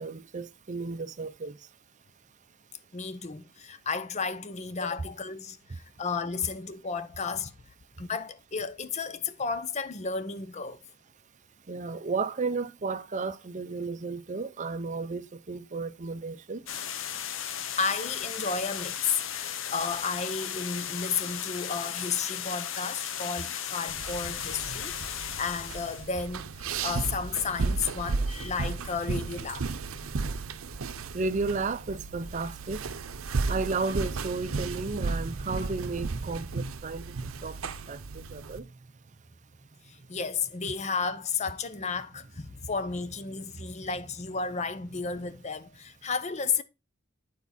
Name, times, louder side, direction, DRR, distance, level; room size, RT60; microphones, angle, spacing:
voice 1, 0.0-1.6 11.7-16.6 31.1-32.8 33.5-37.0 37.4-37.6 37.9-38.7, right 3 dB, 35° right, 0.6 m, -33 dB
voice 2, 2.9-7.5 8.0-10.8 17.8-29.7 39.9-46.6, left 5 dB, 35° left, 0.6 m, -33 dB
sound 1, 16.7-26.1, left 9 dB, 65° left, 0.8 m, -36 dB
sound 2, 23.9-38.6, right 4 dB, 90° right, 0.7 m, -34 dB
9.4 x 4.6 x 4.1 m
head